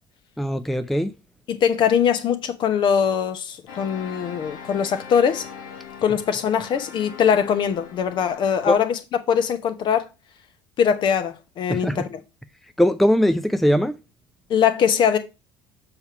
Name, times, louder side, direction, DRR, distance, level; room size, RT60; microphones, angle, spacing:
voice 1, 0.4-1.1 8.7-8.8 11.7-12.1 12.8-14.0, equal, ahead, 0.5 m, -20 dB
voice 2, 1.5-5.5 6.0-9.0 9.3-10.1 10.8-12.2 14.5-15.2, left 7 dB, 45° left, 1.0 m, -21 dB
sound 1, 3.7-8.8, left 6 dB, 70° left, 1.3 m, -41 dB
7.0 x 3.5 x 5.7 m
hypercardioid pair, 65°, 11 cm